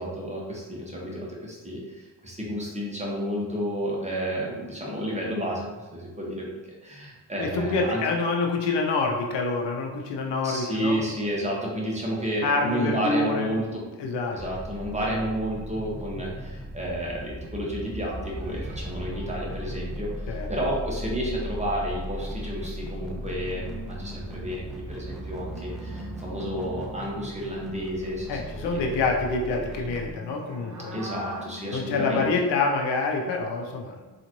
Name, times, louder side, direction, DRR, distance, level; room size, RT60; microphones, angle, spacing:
voice 1, 0.0-8.0 10.4-14.1 14.3-28.9 30.9-32.2, equal, 15° right, -4 dB, 1.0 m, -31 dB
voice 2, 7.4-11.0 12.4-13.5 14.0-14.4 20.3-20.5 28.3-31.0 31.7-34.0, left 3 dB, 85° left, 1 dB, 0.6 m, -26 dB
sound 1, 14.4-30.1, equal, ahead, 0.4 m, -37 dB
sound 2, 17.8-20.5 20.8-20.9 21.2-32.6 32.9-33.3, equal, 45° right, 0.7 m, -44 dB
3.8 x 2.4 x 3.0 m, 1.3 s
cardioid pair, 80°, 41 cm